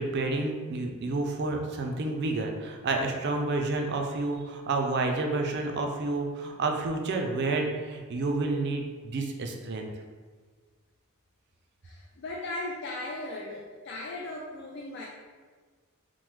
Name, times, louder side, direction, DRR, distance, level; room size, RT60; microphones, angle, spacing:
voice 1, 0.0-9.9, right 3 dB, 50° right, 3 dB, 0.4 m, -30 dB
voice 2, 11.8-15.1, left 2 dB, 55° left, -1 dB, 0.3 m, -37 dB
3.0 x 2.0 x 3.3 m, 1.5 s
head